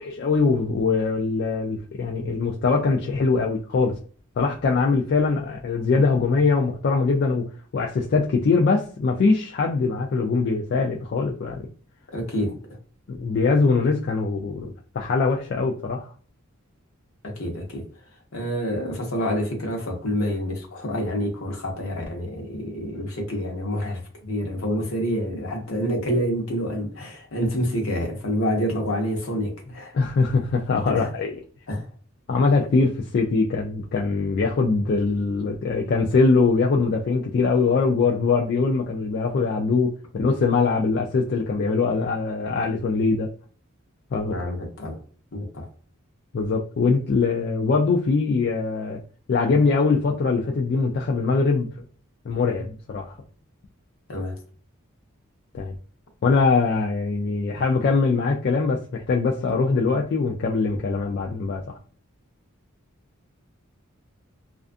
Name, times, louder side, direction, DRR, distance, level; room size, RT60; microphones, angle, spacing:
voice 1, 0.0-4.0 4.4-11.7 13.1-16.1 29.9-31.3 32.3-43.3 44.1-44.3 46.3-49.0 49.3-51.7 52.3-53.2 55.5-55.7 56.2-61.8, left 4 dB, 50° left, 0.3 m, -22 dB
voice 2, 12.1-12.8 17.2-17.8 18.3-30.0 30.9-31.1 31.7-31.9 44.3-45.0 45.3-45.7 54.1-54.4, equal, 70° left, 0.9 m, -27 dB
2.4 x 2.3 x 2.4 m
head